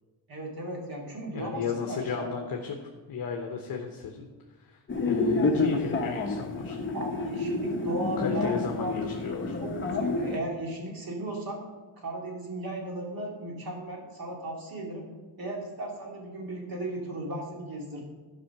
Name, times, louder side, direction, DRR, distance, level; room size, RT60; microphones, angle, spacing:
voice 1, 0.3-2.4 6.9-8.9 9.6-11.6 12.0-15.1 15.4-18.0, right 1 dB, 50° right, -1 dB, 2.5 m, -36 dB
voice 2, 1.3-4.3 4.6-6.8 8.2-9.6, left 6 dB, 50° left, 2 dB, 1.0 m, -34 dB
sound 1, 4.9-10.4, left 3 dB, 25° left, 0.9 m, -29 dB
11.0 x 5.5 x 6.0 m, 1.3 s
wide cardioid pair, 130°, 46 cm